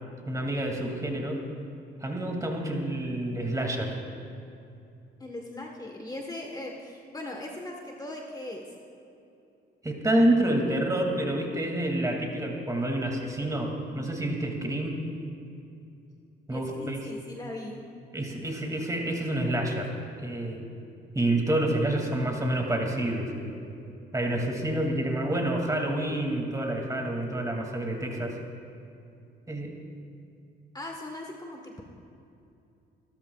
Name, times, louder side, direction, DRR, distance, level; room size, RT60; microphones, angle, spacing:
voice 1, 0.3-1.4 2.0-4.0 9.8-15.0 16.5-17.1 18.1-19.9 20.2-20.6 21.1-23.6 24.1-28.4 29.5-29.8, right 1 dB, 15° right, 1 dB, 2.4 m, -28 dB
voice 2, 5.2-8.6 16.5-17.8 30.7-31.8, left 1 dB, 20° left, 0 dB, 1.3 m, -39 dB
29.0 x 13.5 x 2.4 m, 2.6 s
cardioid pair, 90°, 20 cm